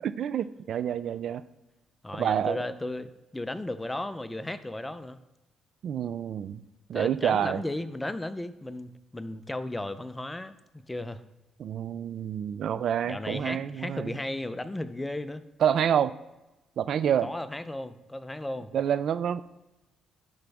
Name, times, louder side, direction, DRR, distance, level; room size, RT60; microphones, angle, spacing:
voice 1, 0.0-1.4 2.2-2.6 5.8-6.6 6.9-7.6 11.6-14.2 15.6-16.1 16.8-17.3 18.7-19.4, right 9 dB, 65° right, 14 dB, 0.3 m, -27 dB
voice 2, 2.0-5.2 6.9-10.5 10.9-11.2 13.0-15.5 17.2-18.7, left 1 dB, 10° left, 12 dB, 0.6 m, -35 dB
11.5 x 5.2 x 3.5 m, 1.0 s
cardioid pair, 90°, 0 cm